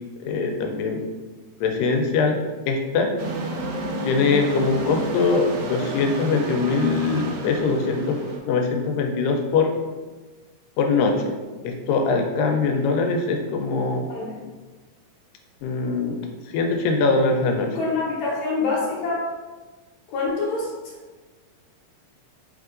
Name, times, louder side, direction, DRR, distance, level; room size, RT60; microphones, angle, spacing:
voice 1, 0.2-1.0 1.6-2.4 2.7-3.1 4.0-8.2 8.5-9.7 10.8-11.3 11.6-14.1 15.6-16.2 16.5-17.8, left 4 dB, 85° left, 3 dB, 2.2 m, -22 dB
sound 1, 3.2-8.4, right 2 dB, 80° right, 2.0 m, -31 dB
voice 2, 14.1-14.4 17.8-19.3 20.1-21.0, left 3 dB, 70° left, -4 dB, 2.0 m, -26 dB
4.6 x 3.6 x 2.4 m, 1.3 s
omnidirectional pair, 3.8 m